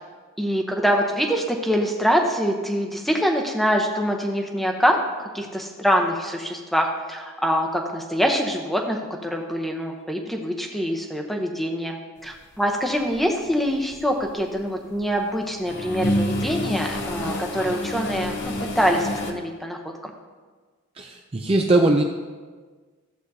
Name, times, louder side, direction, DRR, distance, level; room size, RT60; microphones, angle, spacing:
voice 1, 0.4-19.8 20.0-20.1, equal, ahead, 2 dB, 0.8 m, -24 dB
sound 1, 12.9-13.2 13.7-15.0 15.4-19.3, left 1 dB, 50° left, 0.8 m, -28 dB
voice 2, 21.0-22.0, right 2 dB, 25° right, 2 dB, 0.4 m, -20 dB
14.0 x 8.0 x 2.8 m, 1.4 s
head